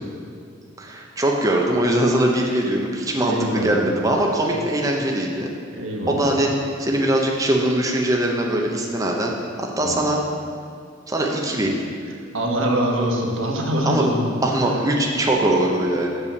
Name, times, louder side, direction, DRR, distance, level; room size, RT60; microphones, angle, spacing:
voice 1, 0.8-5.5 6.1-6.5 6.8-9.3 9.6-10.2 11.1-11.9 13.8-14.0 14.4-16.2, right 1 dB, 20° right, -1 dB, 0.7 m, -21 dB
voice 2, 3.2-4.0 5.7-6.4 9.8-10.0 12.3-14.3, equal, 80° right, 0 dB, 1.3 m, -24 dB
6.9 x 5.5 x 6.7 m, 2.4 s
head